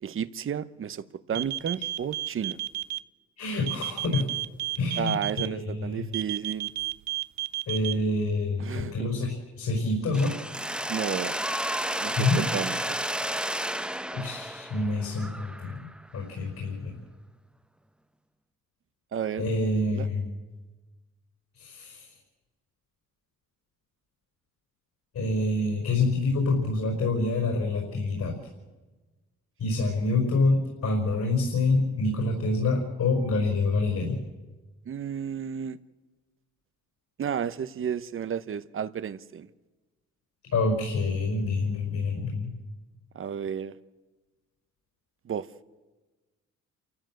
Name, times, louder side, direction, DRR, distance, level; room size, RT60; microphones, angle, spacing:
voice 1, 0.0-2.6 5.0-6.7 8.6-9.1 10.9-11.4 12.0-13.0 19.1-19.5 19.7-20.1 34.9-35.8 37.2-39.5 43.1-43.7 45.2-45.5, right 8 dB, 45° right, 14 dB, 0.9 m, -32 dB
sound 1, 1.3-3.0 3.7-5.5 6.1-7.9, right 15 dB, 65° right, 0.6 m, -31 dB
voice 2, 3.4-4.3 4.8-6.0 7.7-10.3 12.2-12.4 14.1-15.9 16.1-17.0 19.4-20.3 21.6-22.1 25.1-28.4 29.6-34.2 40.5-42.5, left 2 dB, 65° left, 1 dB, 5.4 m, -27 dB
Mechanisms, 10.1-16.0, right 1 dB, 5° right, 0.8 m, -32 dB
28.5 x 14.5 x 7.7 m, 1.2 s
cardioid pair, 90°, 30 cm